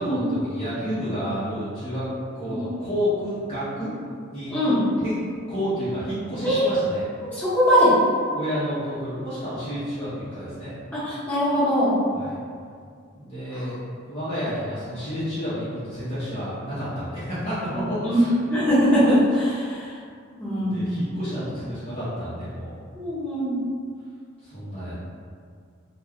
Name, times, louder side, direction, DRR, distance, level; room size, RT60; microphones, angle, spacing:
voice 1, 0.0-2.1 2.3-3.9 4.3-4.5 5.0-7.0 8.3-10.8 12.1-12.3 13.1-13.8 14.1-18.3 20.6-22.8 24.4-25.0, equal, 30° left, -14 dB, 0.8 m, -30 dB
voice 2, 4.5-4.8 6.4-6.8 7.2-7.9 10.9-11.9 13.5-13.6 18.0-19.9 20.4-21.0 22.9-23.6, equal, 10° left, -14 dB, 1.0 m, -21 dB
2.3 x 2.2 x 3.5 m, 2.2 s
head